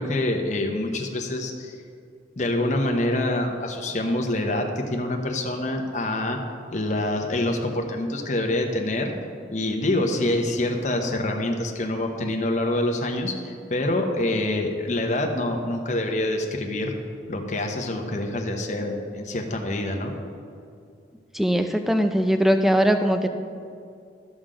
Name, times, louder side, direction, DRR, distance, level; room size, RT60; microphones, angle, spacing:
voice 1, 0.0-1.8 2.4-6.4 6.7-9.1 9.5-16.9 17.3-20.1, left 1 dB, 40° left, 3 dB, 0.9 m, -26 dB
voice 2, 21.3-23.3, equal, ahead, 7 dB, 0.4 m, -20 dB
13.0 x 5.8 x 5.0 m, 2.4 s
head